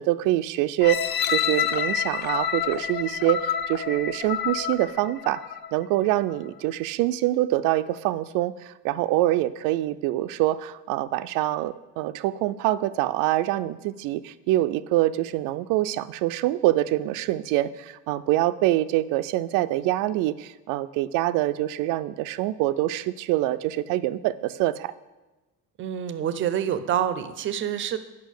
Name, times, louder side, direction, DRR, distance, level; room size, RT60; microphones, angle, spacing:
voice 1, 0.0-5.4 5.7-24.9, right 15 dB, 85° right, 14 dB, 0.5 m, -25 dB
sound 1, 0.8-5.8 6.3-6.4, left 9 dB, 35° left, 0.4 m, -28 dB
voice 2, 25.8-28.0, right 9 dB, 40° right, 12 dB, 0.6 m, -27 dB
8.2 x 5.7 x 6.5 m, 1.1 s
cardioid pair, 155°, 31 cm